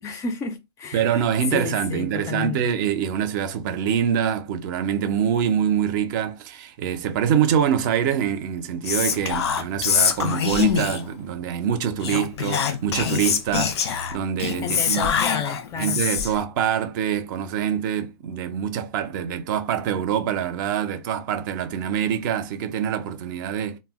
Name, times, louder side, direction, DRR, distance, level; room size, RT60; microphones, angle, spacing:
voice 1, 0.0-1.2 1.5-2.6 14.6-16.0, left 5 dB, 20° left, 0.4 m, -31 dB
voice 2, 0.9-15.1 15.8-23.8, right 8 dB, 50° right, 0.5 m, -25 dB
Whispering, 8.8-11.1 12.0-16.4, left 7 dB, 80° left, 0.5 m, -24 dB
2.2 x 2.0 x 3.5 m
hypercardioid pair, 140°, 14 cm